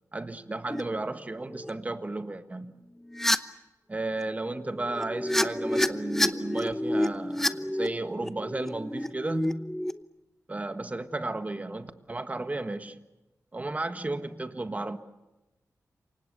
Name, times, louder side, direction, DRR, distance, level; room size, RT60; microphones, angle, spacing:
voice 1, 0.1-2.7 3.9-9.7 10.5-13.0 13.5-15.0, right 2 dB, 25° right, 9 dB, 1.4 m, -34 dB
sound 1, 0.7-0.8 1.4-1.7 3.1-3.4 4.7-9.9, left 1 dB, 5° left, 0.9 m, -29 dB
28.0 x 25.0 x 6.8 m, 1.0 s
wide cardioid pair, 135°, 6 cm